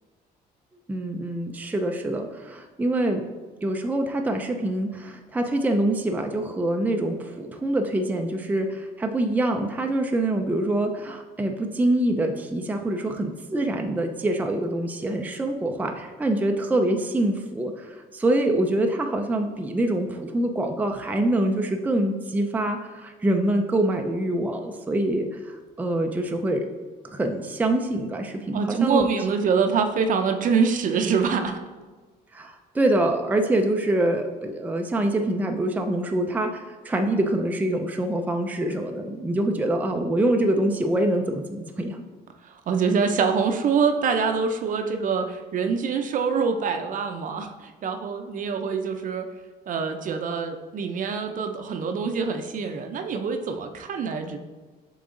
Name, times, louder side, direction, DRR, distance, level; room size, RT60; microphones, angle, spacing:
voice 1, 0.9-3.2 3.6-26.7 27.1-29.1 32.3-42.0, right 1 dB, 10° right, 4 dB, 0.5 m, -25 dB
voice 2, 28.5-31.6 42.4-49.3 49.7-54.4, right 5 dB, 50° right, 6 dB, 0.7 m, -25 dB
7.0 x 3.9 x 3.8 m, 1.3 s
cardioid pair, 110°, 17 cm